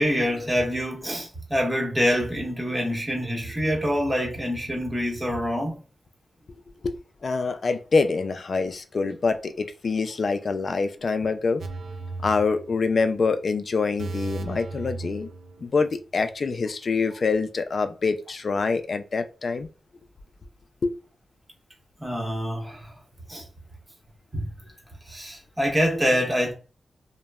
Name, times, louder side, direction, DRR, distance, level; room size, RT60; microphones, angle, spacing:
voice 1, 0.0-5.8 22.0-22.9 23.3-23.4 24.3-24.5 25.1-26.5, equal, 15° right, 1.0 m, -26 dB
voice 2, 7.2-11.6 12.2-15.3 15.6-19.7 20.8-20.9, left 4 dB, 50° left, 0.3 m, -25 dB
sound 1, 11.6-13.2 13.4-13.6 14.0-15.9 16.2-16.3, right 3 dB, 75° right, 0.3 m, -36 dB
3.0 x 2.1 x 2.2 m
wide cardioid pair, 105°, 0 cm